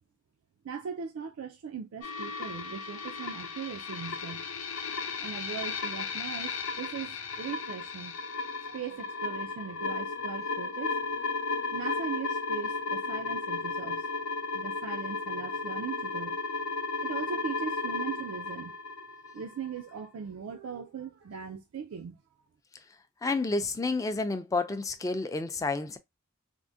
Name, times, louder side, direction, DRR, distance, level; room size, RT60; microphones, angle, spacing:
voice 1, 0.6-4.9 5.2-8.2 8.6-11.0 11.7-16.4 17.0-18.7 19.3-22.2, right 7 dB, 90° right, 0.4 m, -39 dB
sound 1, 2.0-19.9, left 4 dB, 90° left, 0.6 m, -34 dB
voice 2, 23.2-26.0, left 3 dB, 15° left, 0.3 m, -30 dB
3.5 x 2.1 x 2.5 m
head